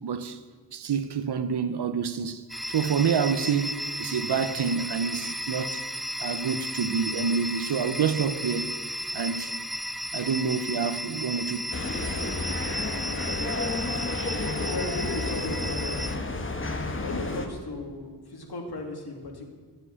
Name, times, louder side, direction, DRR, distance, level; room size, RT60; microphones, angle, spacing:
voice 1, 0.0-0.4 0.7-5.8 6.2-8.7 9.1-9.5 10.1-11.6, right 6 dB, 75° right, 0.9 m, -28 dB
sound 1, 2.5-16.2, equal, ahead, 0.4 m, -34 dB
sound 2, 11.7-17.5, left 2 dB, 30° left, 1.4 m, -31 dB
voice 2, 14.6-16.2 17.0-19.5, left 2 dB, 70° left, 2.7 m, -36 dB
13.0 x 7.8 x 9.5 m
wide cardioid pair, 130°, 40 cm